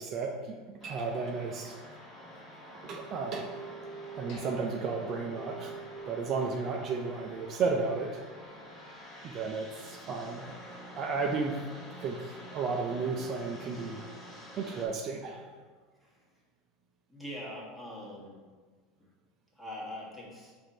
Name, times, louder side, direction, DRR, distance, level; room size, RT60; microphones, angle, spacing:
voice 1, 0.0-1.7 2.7-3.5 4.2-5.7 6.1-8.2 9.2-10.5 11.0-11.6 12.0-14.1 14.6-15.5, right 4 dB, 45° right, 2 dB, 0.4 m, -33 dB
sound 1, 0.8-14.9, right 1 dB, 20° left, 1.3 m, -47 dB
sound 2, 4.3-6.2 6.5-6.6 7.2-7.3, left 2 dB, 60° left, 1.2 m, -54 dB
voice 2, 17.1-18.4 19.0-19.1 19.5-20.5, left 1 dB, 5° left, -6 dB, 1.5 m, -43 dB
4.8 x 2.6 x 4.3 m, 1.5 s
supercardioid pair, 115°, 0 cm